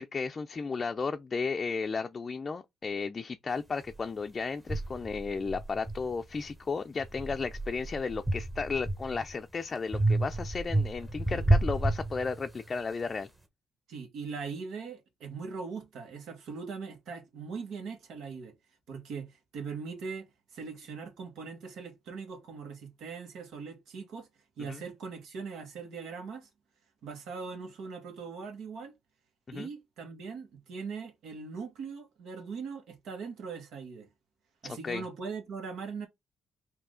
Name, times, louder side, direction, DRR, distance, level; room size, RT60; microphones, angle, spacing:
voice 1, 0.0-13.3 24.6-24.8 29.5-29.7 34.6-35.0, left 4 dB, 35° left, 0.4 m, -34 dB
sound 1, 3.9-4.0 4.7-6.5 7.0-9.3 9.9-12.7, right 2 dB, 15° right, 1.1 m, -30 dB
voice 2, 13.9-18.5 18.9-24.3 24.6-26.5 27.0-28.9 29.5-34.1 34.6-36.1, right 5 dB, 80° right, 1.6 m, -40 dB
4.6 x 2.8 x 3.7 m
cardioid pair, 90°, 0 cm